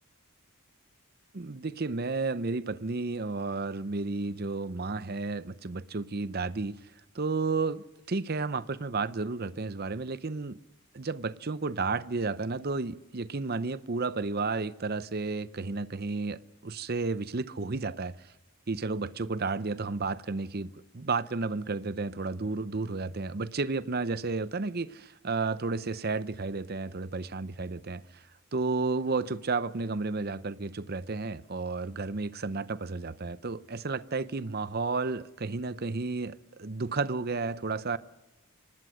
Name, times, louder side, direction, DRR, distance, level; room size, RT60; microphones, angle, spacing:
voice 1, 1.3-6.8 7.1-10.6 10.9-18.3 18.7-20.7 20.9-28.2 28.5-38.0, right 3 dB, 45° right, 0.7 m, -32 dB
25.0 x 19.5 x 6.4 m
head